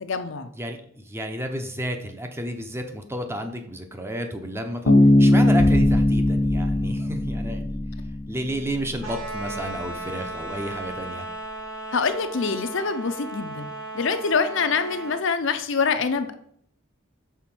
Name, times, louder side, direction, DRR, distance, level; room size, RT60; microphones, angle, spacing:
voice 1, 0.0-0.5 11.9-16.3, left 5 dB, 65° left, 9 dB, 0.6 m, -25 dB
voice 2, 0.6-4.9 5.2-7.8 8.3-11.3, equal, 10° right, 5 dB, 0.7 m, -32 dB
Bass guitar, 4.9-8.4, left 1 dB, 80° left, 1.2 m, -19 dB
sound 1, 5.6-11.8, left 1 dB, 30° left, 0.7 m, -32 dB
sound 2, 9.0-15.2, right 2 dB, 75° right, 1.8 m, -35 dB
5.8 x 3.8 x 6.0 m, 0.67 s
head